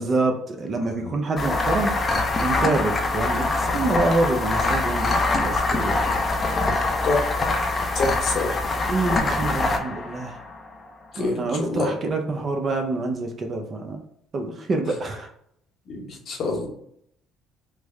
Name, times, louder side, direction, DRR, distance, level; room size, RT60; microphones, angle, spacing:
voice 1, 0.0-1.9 2.4-6.1 8.9-10.3 11.2-14.0 14.3-15.3, right 2 dB, 40° right, 4 dB, 0.5 m, -26 dB
sound 1, 1.4-10.7, left 2 dB, 35° left, 0.5 m, -24 dB
voice 2, 7.0-7.3 7.9-8.6 11.1-11.9 15.9-16.7, left 3 dB, 55° left, 1 dB, 0.9 m, -26 dB
3.3 x 2.0 x 3.4 m, 0.72 s
supercardioid pair, 80°, 0 cm